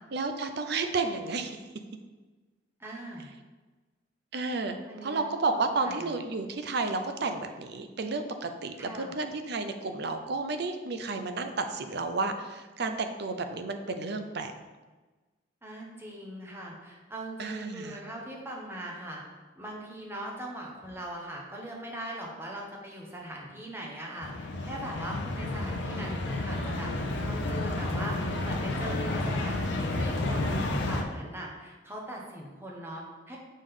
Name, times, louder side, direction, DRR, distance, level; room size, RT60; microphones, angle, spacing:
voice 1, 0.1-1.6 4.3-4.8 5.0-14.5 17.4-18.0, right 3 dB, 60° right, 7 dB, 0.6 m, -32 dB
voice 2, 2.8-3.3 4.9-5.2 5.5-6.1 8.8-9.1 15.6-19.2 19.6-26.9 27.3-33.4, right 1 dB, 15° right, -2 dB, 1.1 m, -40 dB
sound 1, 24.2-31.0, left 2 dB, 70° left, 0.7 m, -31 dB
6.5 x 5.3 x 3.7 m, 1.3 s
head